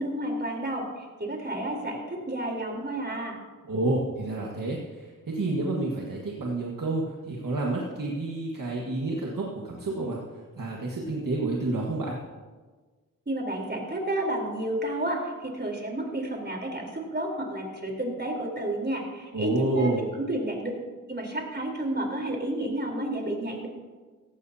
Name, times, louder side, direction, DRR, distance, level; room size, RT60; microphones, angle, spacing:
voice 1, 0.0-3.4 13.3-19.9 20.2-20.7 21.1-23.7, right 1 dB, 30° right, 0 dB, 3.9 m, -31 dB
voice 2, 3.6-12.1 19.3-20.0, right 2 dB, 80° right, -3 dB, 1.7 m, -29 dB
17.0 x 15.5 x 2.8 m, 1.4 s
cardioid pair, 50°, 32 cm